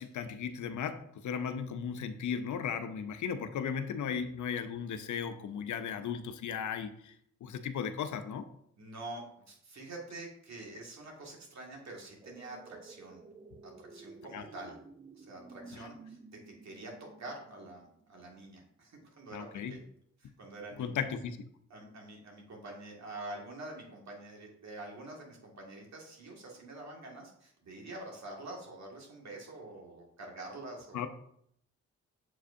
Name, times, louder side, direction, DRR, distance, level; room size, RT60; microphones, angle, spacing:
voice 1, 0.0-7.1 7.4-8.5 14.3-14.4 15.8-15.9 19.3-19.7 20.8-21.4 30.9-31.1, left 7 dB, 70° left, 9 dB, 0.7 m, -36 dB
voice 2, 8.8-13.2 13.6-14.8 15.2-19.9 20.2-21.0 21.7-31.1, right 2 dB, 60° right, -1 dB, 2.1 m, -46 dB
sound 1, 12.2-18.3 18.7-18.8, right 4 dB, 20° right, 0.6 m, -53 dB
7.4 x 4.8 x 2.7 m, 0.69 s
supercardioid pair, 55°, 31 cm